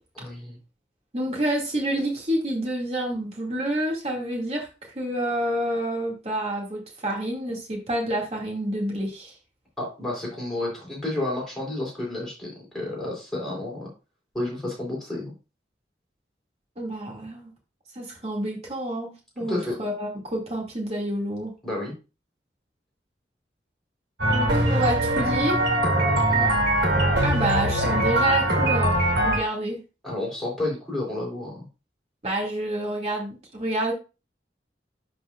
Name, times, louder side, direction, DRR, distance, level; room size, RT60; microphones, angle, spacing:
voice 1, 0.1-0.6 9.8-13.9 14.3-15.3 19.4-19.8 21.6-21.9 26.3-26.7 30.0-31.6, left 2 dB, ahead, -4 dB, 3.9 m, -31 dB
voice 2, 1.1-4.7 4.9-9.3 16.8-17.5 18.0-21.5 24.3-25.5 27.2-29.0 29.2-29.8 32.2-33.9, right 1 dB, 35° right, -1 dB, 2.3 m, -28 dB
sound 1, 24.2-29.4, right 1 dB, 80° right, 2.6 m, -22 dB
12.0 x 4.4 x 2.5 m, 0.31 s
head